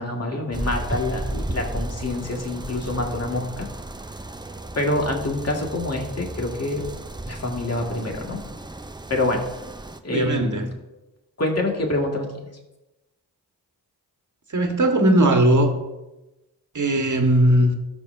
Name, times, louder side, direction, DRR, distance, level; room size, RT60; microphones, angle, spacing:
voice 1, 0.0-3.7 4.8-6.8 7.2-8.4 9.1-9.4 10.0-10.6 11.4-12.3, left 2 dB, 40° left, 0 dB, 2.1 m, -26 dB
sound 1, 0.5-10.0, right 1 dB, 10° right, 0.6 m, -34 dB
voice 2, 10.1-10.7 14.5-15.7 16.7-17.7, right 1 dB, 50° right, 3 dB, 1.6 m, -18 dB
13.0 x 6.7 x 2.7 m, 1.0 s
cardioid pair, 45°, 40 cm